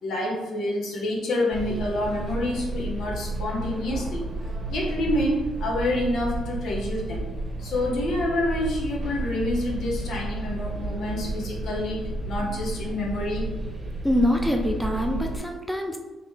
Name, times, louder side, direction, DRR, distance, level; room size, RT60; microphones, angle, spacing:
voice 1, 0.0-4.2 4.7-7.3 7.6-13.6, left 1 dB, 70° left, -1 dB, 1.0 m, -28 dB
sound 1, 1.5-15.4, right 2 dB, 35° right, 1.1 m, -32 dB
voice 2, 14.0-16.0, left 1 dB, ahead, 2 dB, 0.5 m, -24 dB
3.8 x 3.3 x 3.1 m, 1.1 s
cardioid pair, 90°, 0 cm